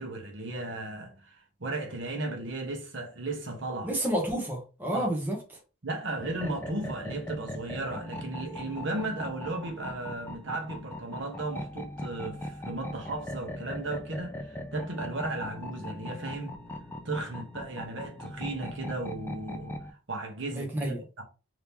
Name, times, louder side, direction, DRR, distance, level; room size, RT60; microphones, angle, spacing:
voice 1, 0.0-3.9 4.9-5.1 5.8-16.6 17.0-19.8 20.1-21.2, right 2 dB, 60° right, 0.9 m, -35 dB
voice 2, 3.8-5.4 20.5-21.0, right 1 dB, 10° right, 0.8 m, -30 dB
sound 1, 6.2-19.9, left 1 dB, 10° left, 0.3 m, -40 dB
2.8 x 2.8 x 3.4 m
head